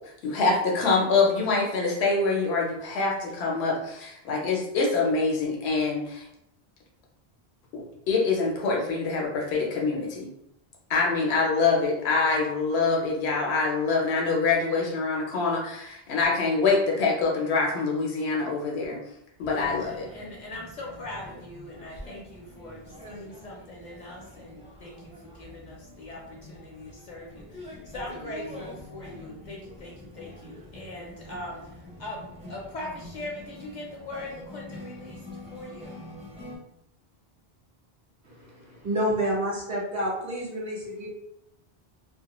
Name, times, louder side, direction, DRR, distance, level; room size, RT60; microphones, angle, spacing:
voice 1, 0.0-6.3 7.7-10.3 10.9-19.0 19.4-20.1, left 4 dB, 90° left, -1 dB, 0.8 m, -25 dB
sound 1, 19.4-36.6, left 1 dB, 10° right, 0.4 m, -45 dB
voice 2, 19.5-35.2 35.5-36.1, left 1 dB, 55° left, -2 dB, 0.5 m, -41 dB
voice 3, 38.2-41.1, right 1 dB, 50° right, -5 dB, 0.7 m, -29 dB
2.2 x 2.1 x 2.9 m, 0.80 s
omnidirectional pair, 1.0 m